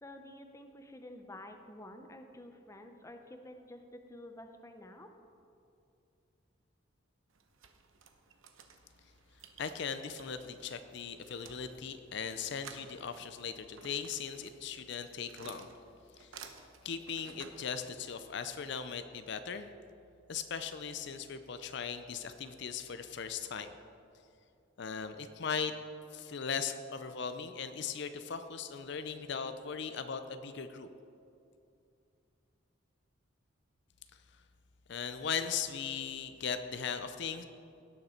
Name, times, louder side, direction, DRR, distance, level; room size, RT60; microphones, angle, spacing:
voice 1, 0.0-5.1, left 1 dB, 15° left, 6 dB, 0.6 m, -50 dB
sound 1, 7.3-18.4, right 6 dB, 80° right, 0.9 m, -55 dB
voice 2, 9.6-15.7 16.2-16.3 16.8-19.7 20.3-23.8 24.8-25.7 26.1-30.9 34.9-37.4, left 6 dB, 60° left, 9 dB, 0.5 m, -38 dB
17.5 x 6.6 x 4.4 m, 2.6 s
head